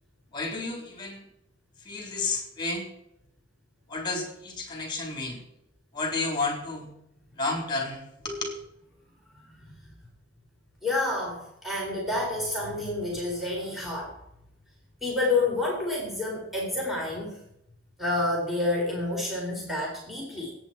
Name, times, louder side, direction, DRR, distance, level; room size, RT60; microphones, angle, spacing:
voice 1, 0.3-1.2 1.9-2.9 3.9-5.4 5.9-6.9 7.4-8.6, left 3 dB, 25° left, 2 dB, 3.9 m, -31 dB
voice 2, 10.8-14.1 15.0-17.4 18.0-20.5, left 2 dB, ahead, -4 dB, 4.0 m, -29 dB
20.5 x 9.6 x 4.6 m, 0.79 s
head